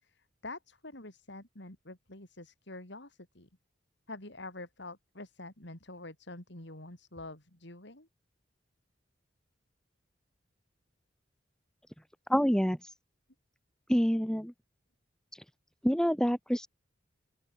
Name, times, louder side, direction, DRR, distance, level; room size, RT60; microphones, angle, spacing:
voice 1, 0.0-3.5 4.1-8.1, left 2 dB, 65° left, 5.2 m, -46 dB
voice 2, 12.3-12.8 13.9-14.5 15.8-16.7, equal, 5° left, 1.7 m, -26 dB
open air
head